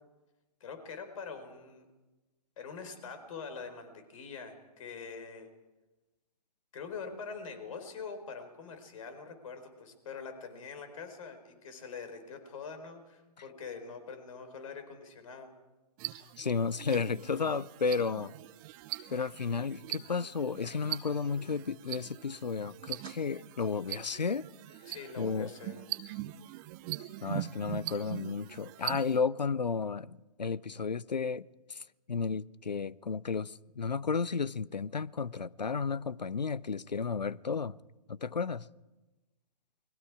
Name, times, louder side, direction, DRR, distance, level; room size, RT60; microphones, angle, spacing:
voice 1, 0.6-1.9 2.6-5.5 6.7-15.5 24.9-25.8, left 5 dB, 50° left, 4.6 m, -44 dB
sound 1, 16.0-29.2, right 17 dB, 30° right, 0.9 m, -42 dB
voice 2, 16.4-18.3 19.1-24.5 25.2-25.5 27.2-31.8 32.1-37.8 38.1-38.7, left 5 dB, 85° left, 0.7 m, -33 dB
29.5 x 22.0 x 4.9 m
figure-of-eight pair, 125°, 21 cm